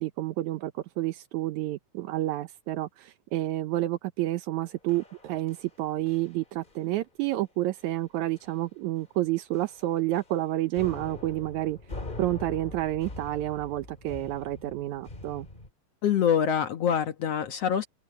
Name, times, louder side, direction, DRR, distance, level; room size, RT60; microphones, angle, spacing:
voice 1, 0.0-11.8 12.2-15.5, right 16 dB, 75° right, 1.9 m, -30 dB
sound 1, 4.9-5.8 6.1-6.4 6.6-6.9 7.2-7.4 7.8-7.9 8.4-8.7 9.0-9.1 9.5-10.4 10.7-15.7, left 2 dB, 20° left, 1.8 m, -43 dB
voice 2, 16.0-17.9, left 8 dB, 60° left, 1.9 m, -25 dB
open air
omnidirectional pair, 3.8 m